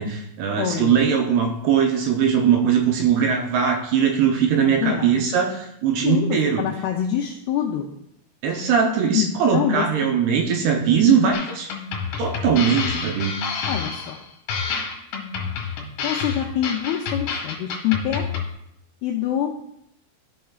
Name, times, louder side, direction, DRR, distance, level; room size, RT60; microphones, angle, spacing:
voice 1, 0.0-6.6 8.4-11.7 12.2-13.3, right 7 dB, 75° right, 2 dB, 2.5 m, -20 dB
voice 2, 0.6-1.1 4.6-5.3 6.0-7.9 9.1-9.9 13.7-14.2 16.0-18.3 19.0-19.5, left 10 dB, 90° left, 1 dB, 2.2 m, -25 dB
sound 1, 11.3-18.5, left 5 dB, 65° left, 3.0 m, -29 dB
13.5 x 5.7 x 2.4 m, 0.77 s
omnidirectional pair, 5.2 m